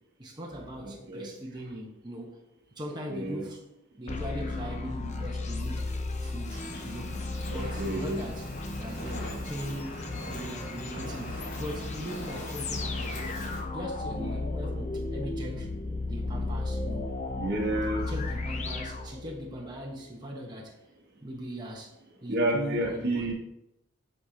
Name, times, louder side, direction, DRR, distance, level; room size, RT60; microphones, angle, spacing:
voice 1, 0.2-2.4 2.8-3.7 4.0-5.9 6.2-7.1 7.5-8.5 8.8-9.9 10.3-13.2 13.7-15.7 16.0-17.0 18.1-20.7 21.2-21.9 22.2-23.3, equal, 20° right, -2 dB, 1.2 m, -40 dB
voice 2, 0.8-1.3 3.1-3.4 7.5-8.2 14.2-14.3 17.4-18.1 22.3-23.3, right 1 dB, 55° right, 1 dB, 1.4 m, -30 dB
sound 1, 4.1-19.7, left 2 dB, 35° left, 0.7 m, -35 dB
Fire, 6.5-13.6, equal, 60° left, 2.9 m, -41 dB
8.2 x 6.7 x 2.9 m, 0.86 s
head